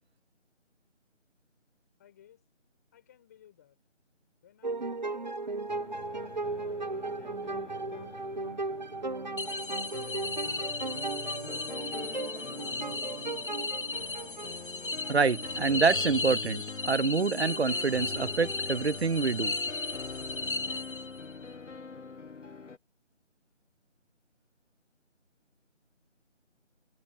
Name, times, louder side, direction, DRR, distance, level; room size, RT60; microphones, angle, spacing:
voice 1, 2.0-2.5 2.9-3.8 4.4-6.0 7.1-9.3 9.8-11.0, left 10 dB, 15° left, 5.2 m, -62 dB
sound 1, 4.6-15.1, right 3 dB, 35° right, 1.3 m, -36 dB
sound 2, 5.7-22.8, left 4 dB, 70° left, 1.1 m, -44 dB
sound 3, 9.4-21.3, left 3 dB, 45° left, 1.7 m, -35 dB
voice 2, 15.1-19.6, right 5 dB, 55° right, 0.6 m, -27 dB
figure-of-eight pair, 170°, 37 cm